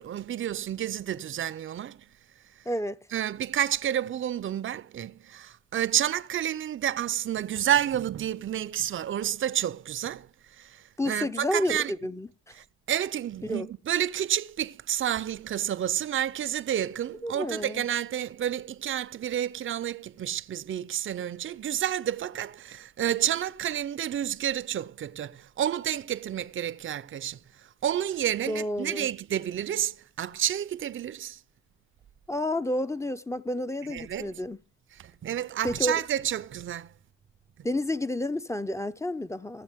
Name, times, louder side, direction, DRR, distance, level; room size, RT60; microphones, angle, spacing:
voice 1, 0.0-2.0 3.1-10.3 10.6-11.9 12.6-27.4 27.8-31.4 33.9-34.3 34.9-36.9, right 10 dB, 45° right, 0.6 m, -30 dB
voice 2, 2.7-3.0 11.0-12.3 13.4-13.7 17.2-17.9 28.5-29.1 32.3-34.6 35.6-36.0 37.6-39.6, left 1 dB, 10° left, 0.6 m, -30 dB
17.5 x 7.1 x 3.5 m
cardioid pair, 90°, 30 cm